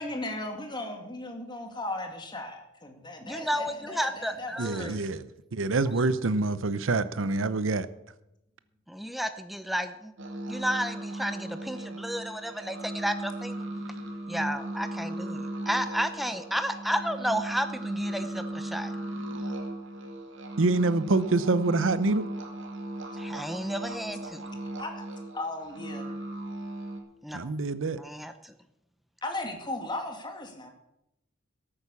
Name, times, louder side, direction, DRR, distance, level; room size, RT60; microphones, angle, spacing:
voice 1, 0.0-5.1 24.8-25.0 25.3-26.1 29.2-30.7, left 2 dB, 25° left, 2.2 m, -36 dB
voice 2, 3.2-5.0 8.9-10.1 10.5-13.6 14.3-18.9 23.2-24.4 27.2-27.5 28.0-28.5, equal, ahead, 0.7 m, -32 dB
voice 3, 4.6-5.2 5.5-7.9 20.6-22.2 27.3-28.0, right 3 dB, 85° right, 0.7 m, -26 dB
sound 1, 10.2-27.0, right 1 dB, 70° right, 2.3 m, -37 dB
13.0 x 8.7 x 7.1 m
head